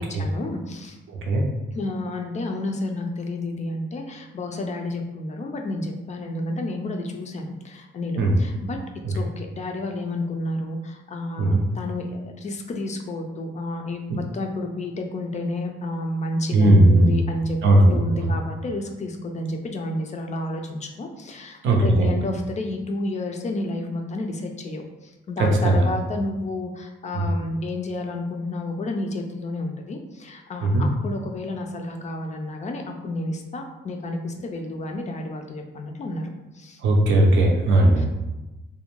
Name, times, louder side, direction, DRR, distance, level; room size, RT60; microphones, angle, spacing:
voice 1, 0.0-1.0 1.7-8.8 9.1-17.6 17.9-36.3 36.5-36.8 38.0-38.1, left 2 dB, 35° left, 3 dB, 0.4 m, -30 dB
voice 2, 1.1-1.5 8.2-8.4 9.0-9.1 11.4-11.6 16.5-17.1 17.6-18.3 21.6-22.1 25.4-25.8 27.1-27.3 30.6-30.9 36.8-38.0, right 1 dB, 70° right, 0 dB, 0.6 m, -18 dB
2.5 x 2.1 x 3.0 m, 1.1 s
cardioid pair, 90°, 20 cm